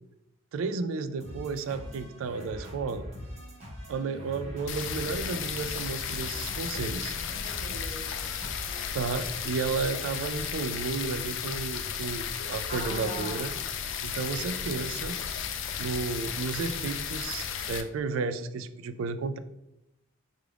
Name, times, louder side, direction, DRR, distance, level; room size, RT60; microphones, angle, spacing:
voice 1, 0.5-3.1 3.9-7.1 8.9-13.5 14.0-15.2 15.8-19.4, right 4 dB, 80° right, 11 dB, 0.3 m, -32 dB
sound 1, 1.2-9.4, equal, 30° right, 1.2 m, -43 dB
voice 2, 3.9-4.3 7.3-8.1 12.7-13.5, right 1 dB, 30° left, -2 dB, 1.0 m, -41 dB
sound 2, 4.7-17.8, left 7 dB, 65° left, 0.4 m, -34 dB
4.5 x 2.4 x 3.3 m, 0.89 s
head